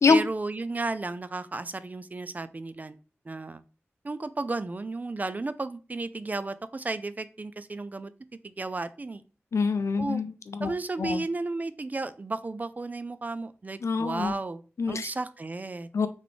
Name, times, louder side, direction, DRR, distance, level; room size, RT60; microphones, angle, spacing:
voice 1, 0.1-3.0 3.3-3.6 4.0-8.1 8.4-9.2 10.0-10.2 10.6-14.6 14.9-15.9, right 3 dB, 35° right, 0.3 m, -33 dB
voice 2, 9.5-10.7 11.0-11.2 13.8-14.3 14.8-15.1 15.9-16.1, left 4 dB, 75° left, 0.4 m, -25 dB
3.9 x 3.5 x 3.2 m
wide cardioid pair, 85°, 5 cm